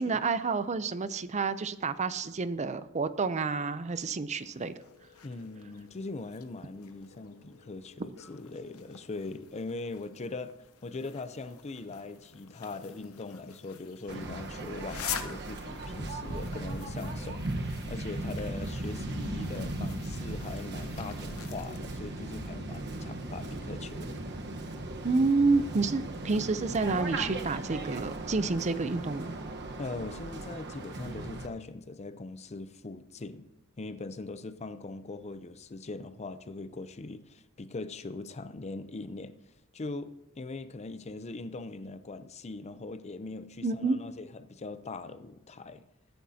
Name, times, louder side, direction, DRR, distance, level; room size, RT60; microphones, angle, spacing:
voice 1, 0.0-4.7 25.0-29.3 43.6-44.0, right 4 dB, 30° right, 0.5 m, -29 dB
sound 1, 4.3-21.8, left 8 dB, 75° left, 0.9 m, -47 dB
voice 2, 5.2-24.2 29.8-33.5 33.8-45.9, left 3 dB, 30° left, 0.5 m, -41 dB
Waves surf, 14.1-31.5, right 2 dB, 50° right, 1.2 m, -37 dB
21.5 x 10.5 x 2.8 m
head